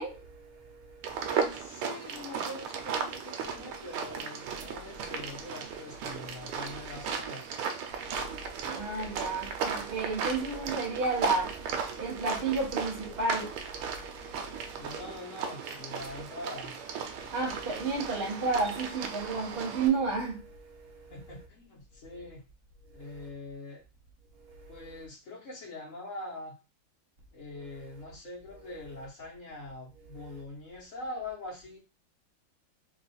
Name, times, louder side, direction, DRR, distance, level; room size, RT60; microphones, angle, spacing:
voice 1, 0.0-1.3 8.0-15.0 17.2-21.1 23.0-23.2 24.4-24.8 30.3-30.4, right 3 dB, 65° right, 0.5 m, -33 dB
sound 1, 1.0-19.9, right 6 dB, 90° right, 1.5 m, -36 dB
voice 2, 1.3-7.4 14.7-16.7 21.1-22.4 22.9-23.8 24.7-26.5 27.3-31.8, left 2 dB, 50° left, 1.0 m, -43 dB
3.6 x 2.4 x 4.1 m
omnidirectional pair, 2.3 m